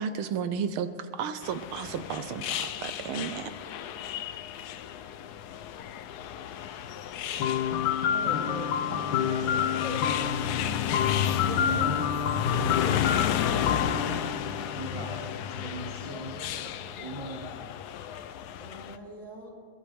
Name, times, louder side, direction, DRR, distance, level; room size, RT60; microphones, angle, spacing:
voice 1, 0.0-3.5, right 7 dB, 80° right, 11 dB, 1.6 m, -33 dB
sound 1, 1.4-19.0, left 9 dB, 90° left, 0.8 m, -33 dB
voice 2, 6.9-7.4 8.1-9.5 18.6-19.5, equal, 35° left, -5 dB, 5.2 m, -42 dB
sound 2, 7.4-15.3, left 9 dB, 70° left, 1.5 m, -29 dB
voice 3, 8.9-10.2 11.4-13.0 13.5-17.5, right 1 dB, 20° right, -5 dB, 2.1 m, -40 dB
22.0 x 16.5 x 3.4 m, 2.2 s
omnidirectional pair, 2.4 m